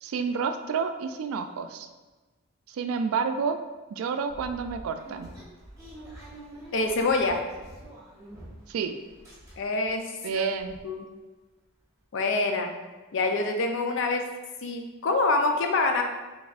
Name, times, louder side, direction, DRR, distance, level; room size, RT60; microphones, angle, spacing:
voice 1, 0.0-1.9 2.7-3.6 3.9-5.3 8.7-9.0 10.2-10.7, right 5 dB, 80° right, 8 dB, 0.3 m, -29 dB
sound 1, 4.3-8.8 9.1-9.9 10.3-10.4 10.6-10.8, right 1 dB, 15° right, 1.0 m, -46 dB
voice 2, 6.7-7.4 9.6-10.5 10.8-11.1 12.1-12.7 13.1-14.3 14.6-16.0, left 3 dB, 60° left, 4 dB, 0.4 m, -26 dB
4.0 x 3.5 x 2.3 m, 1.2 s
head